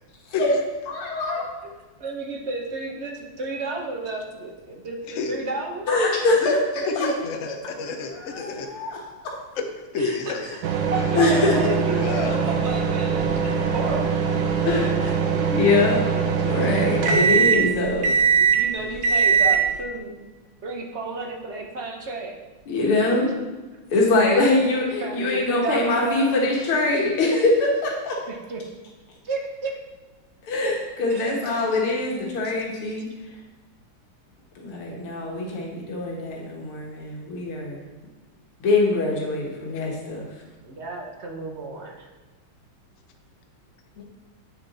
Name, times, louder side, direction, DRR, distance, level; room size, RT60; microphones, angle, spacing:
voice 1, 0.9-1.4 5.9-7.1 8.1-9.0 11.1-11.8 14.7-14.9 15.5-16.1 16.5-18.1 22.7-23.3 23.9-27.3 27.8-28.2 30.4-33.1 34.6-37.8 38.6-40.3, left 2 dB, 90° left, -2 dB, 2.3 m, -23 dB
voice 2, 2.0-5.9 10.0-10.6 10.9-14.6 15.0-15.5 18.4-20.1 20.6-22.5 22.8-23.1 25.0-26.6 27.3-27.5 28.3-28.6 29.2-29.8 31.0-31.3 35.5-35.8 40.6-42.1, right 3 dB, 45° right, 1 dB, 0.9 m, -32 dB
voice 3, 7.0-8.7 9.6-9.7 9.9-10.5 11.9-12.5 14.6-14.9 39.7-39.9, left 4 dB, 50° left, 4 dB, 1.0 m, -29 dB
sound 1, 10.6-19.8, right 6 dB, 65° right, 1.4 m, -22 dB
9.1 x 6.9 x 4.1 m, 1.2 s
omnidirectional pair, 2.3 m